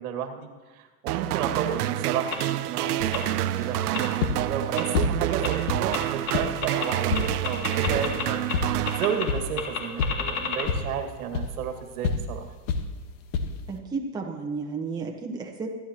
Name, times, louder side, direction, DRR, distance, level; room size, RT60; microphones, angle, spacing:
voice 1, 0.0-12.5, right 8 dB, 70° right, 5 dB, 2.2 m, -32 dB
sound 1, 1.1-9.6, right 13 dB, 85° right, 0.7 m, -28 dB
sound 2, 2.3-2.4 3.1-3.2 3.9-4.0 4.8-4.9 5.4-5.5 5.9-6.0 6.3-6.4 6.6-6.9 7.1-8.2 8.5-8.6 8.9-9.2 9.6-10.7, left 6 dB, 40° left, 2.7 m, -29 dB
sound 3, 3.0-13.8, left 4 dB, 55° left, 1.5 m, -32 dB
voice 2, 13.7-15.7, right 4 dB, 10° right, 0 dB, 1.2 m, -32 dB
26.0 x 10.5 x 3.0 m, 1.3 s
supercardioid pair, 145°, 45 cm